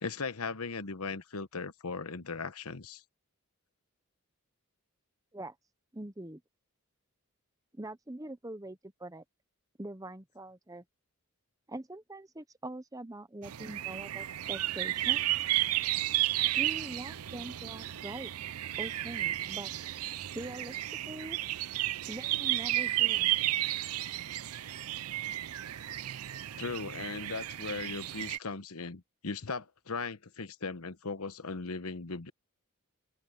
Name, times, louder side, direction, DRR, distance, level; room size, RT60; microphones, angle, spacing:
voice 1, 0.0-3.0 26.6-32.3, left 4 dB, 85° left, 1.2 m, -38 dB
voice 2, 5.9-6.4 7.7-9.2 9.8-10.8 11.7-15.3 16.6-18.3 18.8-19.7 20.3-20.8 21.1-21.4 22.1-23.3, right 1 dB, 15° right, 0.9 m, -43 dB
sound 1, 13.4-28.4, right 15 dB, 85° right, 0.5 m, -33 dB
open air
head